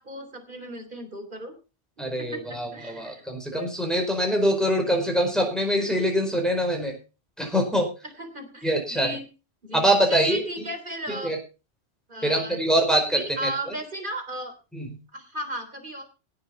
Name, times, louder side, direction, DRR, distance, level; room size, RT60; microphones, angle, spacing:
voice 1, 0.0-1.6 2.2-3.7 4.9-5.3 8.2-9.3 9.6-11.3 12.1-12.6 13.1-14.5 15.1-16.0, right 1 dB, 50° right, 6 dB, 3.6 m, -36 dB
voice 2, 2.0-7.0 7.4-7.9 8.6-9.2 9.7-10.7 11.1-11.4 12.2-13.7 14.7-15.0, equal, ahead, 2 dB, 4.6 m, -24 dB
17.5 x 7.0 x 5.6 m, 0.33 s
omnidirectional pair, 1.1 m